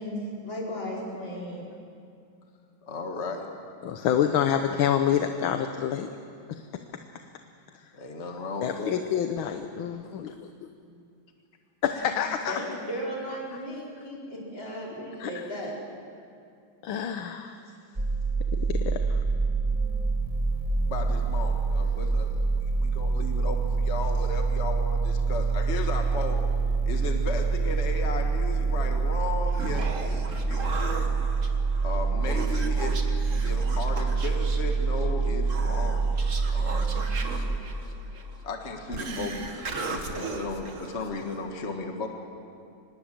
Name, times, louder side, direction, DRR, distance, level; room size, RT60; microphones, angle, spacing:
voice 1, 0.0-1.7 12.5-15.7, equal, 65° left, -4 dB, 5.7 m, -35 dB
voice 2, 2.8-3.5 7.9-9.0 20.9-26.4 26.9-30.2 30.5-31.1 31.8-33.0 33.4-36.1 36.5-36.9 37.8-42.1, left 3 dB, 35° left, 3 dB, 1.8 m, -35 dB
voice 3, 3.8-6.1 6.5-6.6 8.6-10.5 11.8-12.6 15.2-15.4 16.8-17.6 18.5-19.2, left 9 dB, 80° left, 6 dB, 1.8 m, -27 dB
sound 1, 18.0-37.6, right 4 dB, 20° right, 1.9 m, -26 dB
Human voice, 29.3-41.5, right 3 dB, 40° right, 1.8 m, -37 dB
25.0 x 20.5 x 7.7 m, 2.5 s
omnidirectional pair, 2.2 m